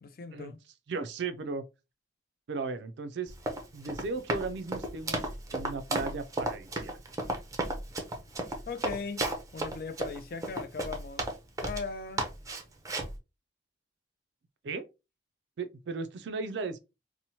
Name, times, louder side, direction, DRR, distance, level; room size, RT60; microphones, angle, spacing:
voice 1, 0.0-0.6 8.7-9.2 9.5-11.3 11.6-12.2, left 4 dB, 55° left, 0.4 m, -38 dB
voice 2, 0.9-1.7 2.5-3.3 3.7-7.0 14.6-14.9 15.6-16.8, right 4 dB, 70° right, 0.4 m, -36 dB
Run, 3.3-11.9 12.2-13.2, right 2 dB, 20° right, 0.5 m, -33 dB
2.9 x 2.1 x 2.7 m
head